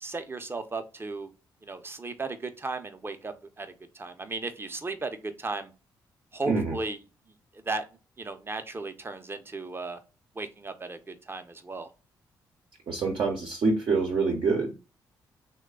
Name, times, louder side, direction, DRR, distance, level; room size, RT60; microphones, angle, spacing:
voice 1, 0.0-1.3 1.6-5.7 6.3-7.0 7.7-7.8 8.2-10.0 10.4-11.9, right 3 dB, 25° right, 8 dB, 0.6 m, -35 dB
voice 2, 6.5-6.8 12.9-14.7, right 4 dB, 60° right, 0 dB, 0.7 m, -26 dB
3.2 x 2.2 x 3.7 m, 0.30 s
supercardioid pair, 50°, 9 cm